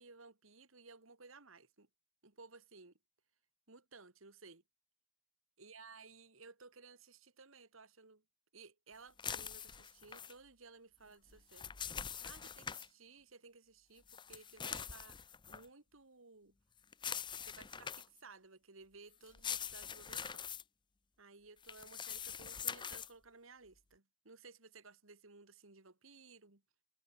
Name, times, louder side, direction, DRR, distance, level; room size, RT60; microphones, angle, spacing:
voice 1, 0.0-1.9 2.2-2.9 3.7-4.6 5.6-8.2 8.5-11.8 12.2-15.2 15.5-16.5 17.4-20.5 21.2-26.6, right 4 dB, 85° right, 2.7 m, -58 dB
sound 1, 9.2-10.3 11.3-12.9 14.1-15.7 16.9-18.2 19.2-20.6 21.6-23.1, left 7 dB, 25° left, 0.6 m, -44 dB
head